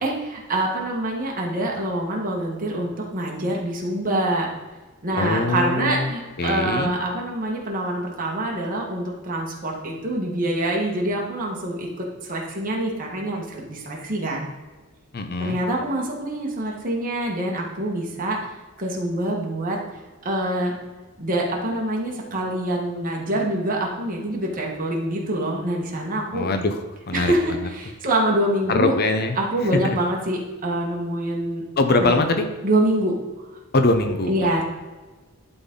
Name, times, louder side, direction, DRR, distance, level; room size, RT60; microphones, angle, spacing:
voice 1, 0.0-4.5 5.0-14.5 15.4-18.5 18.8-19.8 20.2-20.7 21.2-26.5 27.1-28.9 29.4-31.6 32.0-32.2 32.6-33.1 34.3-34.6, right 1 dB, 40° right, -2 dB, 1.6 m, -25 dB
voice 2, 5.2-6.1 6.4-6.9 15.1-15.6 26.3-26.8 27.1-27.7 28.7-29.4 29.8-30.0 31.8-32.5 33.7-34.3, left 2 dB, 45° left, 6 dB, 0.7 m, -22 dB
11.5 x 4.0 x 3.8 m, 1.2 s
head